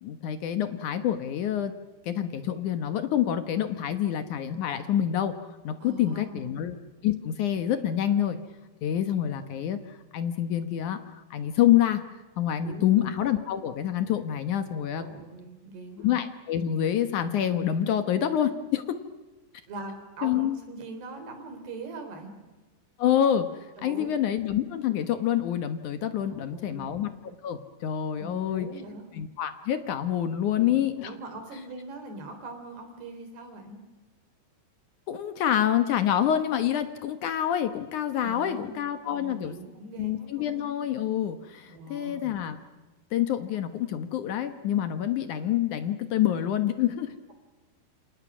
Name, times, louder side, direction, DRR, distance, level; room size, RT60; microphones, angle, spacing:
voice 1, 0.0-1.7 2.1-6.8 7.0-8.4 8.8-9.8 10.1-12.0 12.4-15.1 16.0-19.0 20.2-20.6 23.0-27.1 27.4-28.7 29.1-31.1 35.1-39.6 40.0-42.6 43.1-47.1, left 10 dB, 65° left, 9 dB, 2.0 m, -27 dB
voice 2, 5.8-6.6 12.6-13.0 15.0-16.1 19.7-22.3 23.8-24.2 26.3-26.9 28.1-29.1 30.4-33.8 38.2-40.6 41.7-42.3, right 2 dB, 70° right, 6 dB, 5.9 m, -42 dB
28.5 x 27.5 x 6.2 m, 1.2 s
omnidirectional pair, 4.9 m